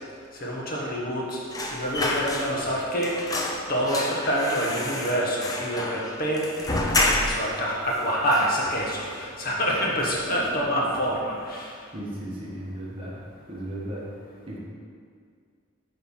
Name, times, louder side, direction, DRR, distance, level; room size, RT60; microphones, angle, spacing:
voice 1, 0.3-1.4 1.7-3.1 3.7-6.7 7.0-11.7, equal, 45° left, -4 dB, 1.2 m, -27 dB
sound 1, 1.5-2.8 3.0-7.6 7.9-8.0 8.3-9.1 9.5-9.7 10.0-10.7 11.0-11.1, left 2 dB, 20° left, 0.5 m, -29 dB
voice 2, 10.3-11.1 11.9-13.2 13.5-14.1 14.5-14.6, right 1 dB, 25° right, -5 dB, 1.3 m, -36 dB
8.5 x 3.3 x 5.5 m, 2.1 s
head